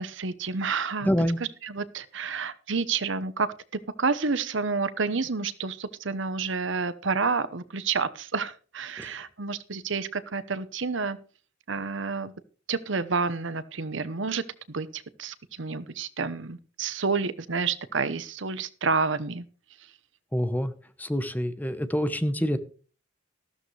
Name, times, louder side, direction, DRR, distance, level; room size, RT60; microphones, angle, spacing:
voice 1, 0.0-1.1 1.6-11.2 11.7-12.3 12.7-19.4, right 4 dB, 65° right, 15 dB, 0.9 m, -29 dB
voice 2, 1.0-1.4 9.0-9.2 20.3-20.7 21.0-22.6, equal, 10° left, 10 dB, 1.0 m, -26 dB
14.0 x 12.5 x 3.3 m, 0.37 s
head